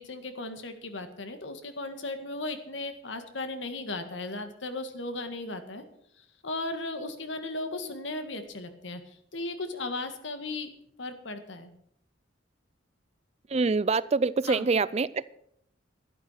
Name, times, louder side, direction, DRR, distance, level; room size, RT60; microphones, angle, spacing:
voice 1, 0.0-5.8 6.2-10.7 11.0-11.7 14.4-14.7, left 2 dB, 80° left, 1.8 m, -36 dB
voice 2, 13.5-15.2, right 4 dB, 35° right, 0.4 m, -25 dB
12.0 x 11.5 x 5.8 m
head